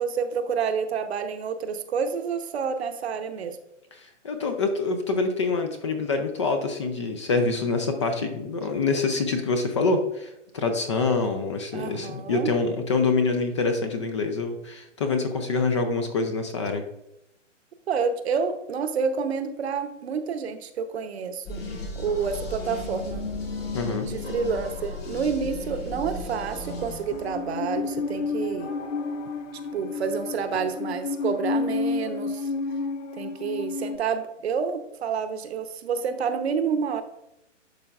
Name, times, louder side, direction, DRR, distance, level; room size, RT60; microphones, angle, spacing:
voice 1, 0.0-3.6 11.7-12.5 17.9-21.6 22.0-23.2 24.0-28.7 29.7-32.5 33.2-37.0, right 6 dB, 55° right, 8 dB, 0.8 m, -29 dB
voice 2, 4.0-16.8 23.7-24.1, left 3 dB, 25° left, 7 dB, 0.4 m, -26 dB
sound 1, 21.5-27.5, left 2 dB, 50° left, 2.3 m, -35 dB
sound 2, 22.1-30.8, left 2 dB, 85° left, 1.2 m, -44 dB
Musical instrument, 27.1-34.0, left 3 dB, 65° left, 0.6 m, -30 dB
11.5 x 4.5 x 2.4 m, 0.87 s
figure-of-eight pair, 130°, 38 cm